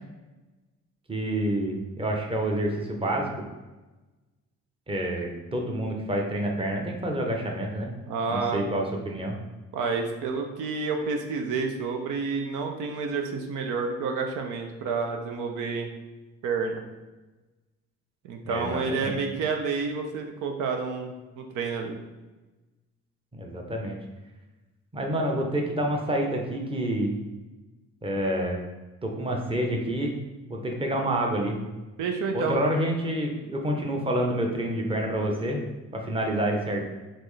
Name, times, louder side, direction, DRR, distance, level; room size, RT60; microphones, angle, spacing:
voice 1, 1.1-3.4 4.9-7.9 8.3-9.4 18.4-19.4 23.3-24.0 24.9-27.2 28.0-28.6 29.0-30.1 30.5-31.6 32.3-35.6 35.9-36.9, right 1 dB, 20° right, 1 dB, 0.8 m, -28 dB
voice 2, 8.1-8.6 9.7-15.9 16.4-16.8 18.2-22.0 32.0-32.6, right 4 dB, 85° right, 4 dB, 0.6 m, -29 dB
4.3 x 3.1 x 3.2 m, 1.1 s
cardioid pair, 90°, 30 cm